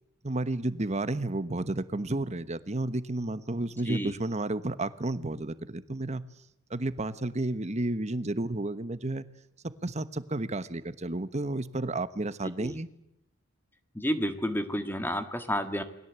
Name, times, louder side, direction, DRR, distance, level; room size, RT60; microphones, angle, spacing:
voice 1, 0.2-6.2 6.7-9.3 9.6-12.9, right 2 dB, 35° right, 13 dB, 1.2 m, -32 dB
voice 2, 13.9-15.8, equal, 10° left, 9 dB, 1.7 m, -30 dB
28.5 x 21.0 x 8.2 m, 0.79 s
head